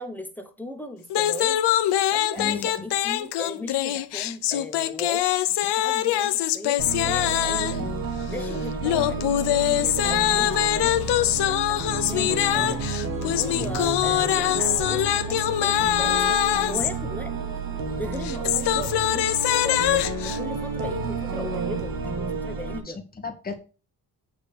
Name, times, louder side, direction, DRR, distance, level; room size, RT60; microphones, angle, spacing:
voice 1, 0.0-1.6 2.1-5.3 5.6-7.9 8.3-10.9 11.4-12.8 13.2-16.2 16.7-17.3 18.0-19.3 19.6-23.0, left 1 dB, 5° left, 4 dB, 1.1 m, -38 dB
sound 1, 1.1-7.9 8.8-16.9 18.1-20.4, left 13 dB, 90° left, 0.9 m, -23 dB
voice 2, 2.4-2.8 22.8-23.5, left 5 dB, 20° left, 4 dB, 1.8 m, -34 dB
sound 2, 6.8-22.8, right 3 dB, 60° right, 2.0 m, -30 dB
8.9 x 3.8 x 6.7 m, 0.33 s
cardioid pair, 160°, 39 cm